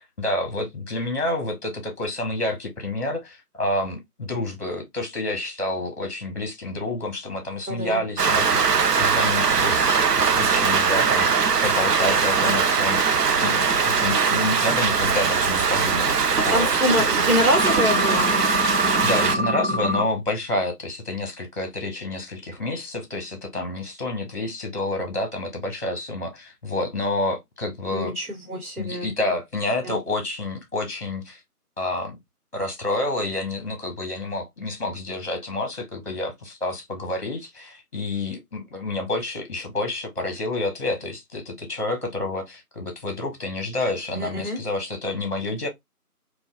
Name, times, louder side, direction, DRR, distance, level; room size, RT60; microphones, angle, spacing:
voice 1, 0.0-17.1 19.0-28.1 28.8-31.4 31.8-32.2 32.5-45.7, left 2 dB, 45° left, 0.9 m, -29 dB
voice 2, 7.7-8.0 16.5-18.4 27.9-29.1 29.8-30.0 44.1-44.6, equal, 70° right, 1.1 m, -25 dB
Rain, 8.2-19.4, right 5 dB, 85° right, 0.6 m, -21 dB
sound 1, 17.5-20.0, left 1 dB, 45° right, 0.9 m, -25 dB
3.2 x 2.2 x 2.3 m
figure-of-eight pair, 170°, 46 cm